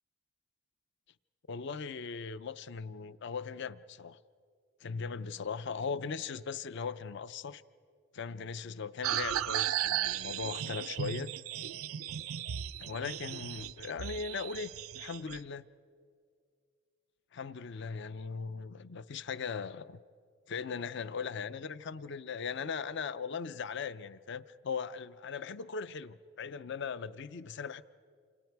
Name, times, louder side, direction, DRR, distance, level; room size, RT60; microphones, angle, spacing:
voice 1, 1.5-4.2 4.8-7.6 8.1-11.3 12.8-15.7 17.3-20.0 20.5-27.8, left 5 dB, 55° left, 0.5 m, -39 dB
sound 1, 9.0-15.4, right 11 dB, 85° right, 0.5 m, -36 dB
28.0 x 27.5 x 4.6 m
head